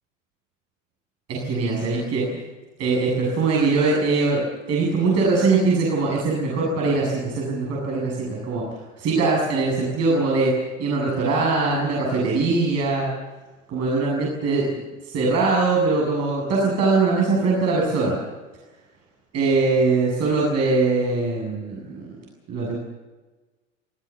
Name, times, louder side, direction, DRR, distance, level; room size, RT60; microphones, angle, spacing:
voice 1, 1.3-2.4 2.8-4.4 4.7-8.6 9.0-10.5 10.8-13.1 13.7-14.8 15.1-18.2 19.3-22.1 22.5-22.8, right 3 dB, 40° right, -3 dB, 7.8 m, -21 dB
26.5 x 16.5 x 7.4 m, 1.2 s
figure-of-eight pair, 85°, 39 cm